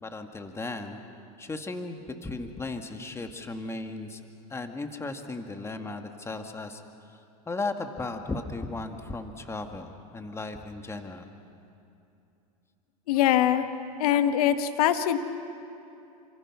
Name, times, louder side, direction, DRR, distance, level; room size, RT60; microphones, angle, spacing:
voice 1, 0.0-1.0 1.4-4.2 4.5-7.2 7.5-11.3, left 3 dB, 15° left, 5 dB, 2.0 m, -36 dB
voice 2, 13.1-13.7 14.0-15.2, left 11 dB, 70° left, 9 dB, 1.4 m, -22 dB
28.5 x 25.5 x 6.1 m, 2.7 s
hypercardioid pair, 100°, 20 cm